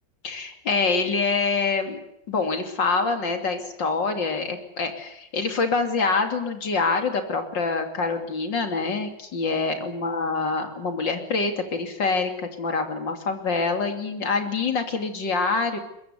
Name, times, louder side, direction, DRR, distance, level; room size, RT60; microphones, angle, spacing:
voice 1, 0.2-2.0 2.3-15.8, left 4 dB, 80° left, 5 dB, 3.5 m, -25 dB
22.5 x 21.5 x 8.4 m, 0.81 s
omnidirectional pair, 2.0 m